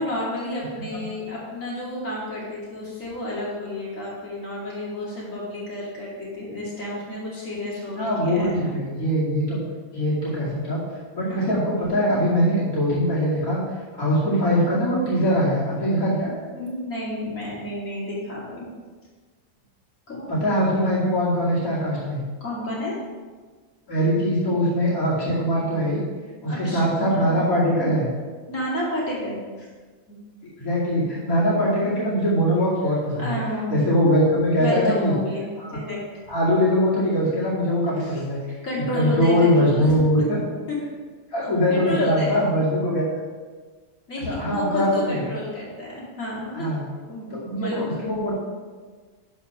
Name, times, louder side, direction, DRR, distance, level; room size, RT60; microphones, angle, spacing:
voice 1, 0.0-8.7 11.3-11.4 16.5-18.6 20.1-20.3 22.4-23.0 26.5-27.3 28.5-29.7 30.1-30.2 33.2-33.7 34.6-35.5 35.7-36.0 38.0-38.2 38.6-39.9 40.7-40.8 41.7-42.5 44.1-46.7 47.0-48.0, left 1 dB, 65° left, -6 dB, 3.0 m, -31 dB
voice 2, 8.0-9.6 9.9-10.8 11.1-13.6 14.0-16.3 20.3-22.2 23.9-26.0 26.4-28.1 30.4-33.4 33.7-35.1 35.6-35.8 36.3-38.4 38.8-40.4 41.3-43.0 44.2-45.2 46.5-46.8 47.3-48.3, equal, 85° left, -7 dB, 2.9 m, -22 dB
11.5 x 4.9 x 5.4 m, 1.4 s
omnidirectional pair, 1.5 m